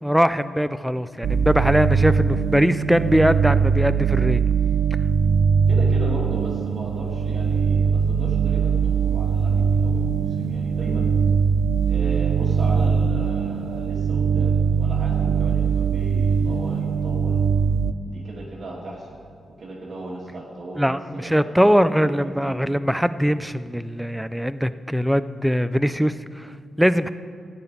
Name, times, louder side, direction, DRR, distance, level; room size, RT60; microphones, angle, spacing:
voice 1, 0.0-4.4 20.8-26.5 26.8-27.1, equal, ahead, 13 dB, 0.3 m, -21 dB
sound 1, 1.2-17.9, right 6 dB, 80° right, 0.5 m, -21 dB
voice 2, 5.7-11.1 11.9-17.4 18.0-19.2 19.6-22.6, right 1 dB, 45° right, -4 dB, 1.6 m, -36 dB
13.5 x 5.9 x 9.2 m, 2.1 s
wide cardioid pair, 175°, 0 cm